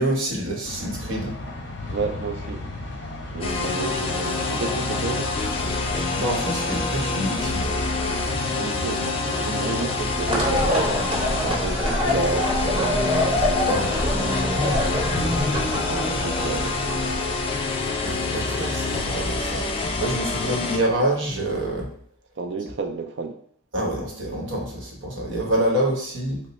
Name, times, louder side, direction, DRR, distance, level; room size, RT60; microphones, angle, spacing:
voice 1, 0.0-1.4 6.1-7.8 13.6-14.4 18.0-21.9 23.7-26.4, right 1 dB, 90° right, 1.0 m, -27 dB
sound 1, 0.6-20.5, left 2 dB, 65° left, 0.7 m, -36 dB
voice 2, 1.9-2.7 3.3-5.3 8.5-11.0 11.3-13.1 14.2-14.4 15.7-17.2 20.4-20.6 22.4-23.4, right 3 dB, 65° right, 0.4 m, -31 dB
sound 2, 3.4-20.8, left 3 dB, 30° left, 0.4 m, -27 dB
sound 3, 10.3-17.4, left 1 dB, 25° right, 0.7 m, -25 dB
3.0 x 2.0 x 4.1 m
head